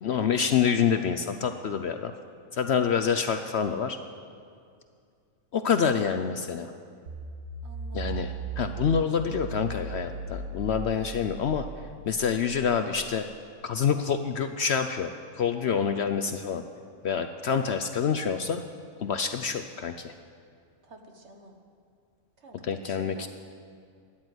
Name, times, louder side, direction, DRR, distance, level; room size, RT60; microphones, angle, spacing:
voice 1, 0.0-2.1 2.5-4.0 5.5-6.7 7.9-11.7 12.0-13.3 13.6-15.1 15.4-16.6 17.0-18.6 19.0-20.1 22.6-23.3, left 7 dB, 60° left, 8 dB, 0.8 m, -27 dB
sound 1, 7.1-13.3, right 4 dB, 75° right, 1.7 m, -38 dB
voice 2, 7.6-8.3 20.8-21.5 22.4-23.3, right 1 dB, 55° right, 3 dB, 1.7 m, -49 dB
14.0 x 10.5 x 7.9 m, 2.3 s
omnidirectional pair, 1.5 m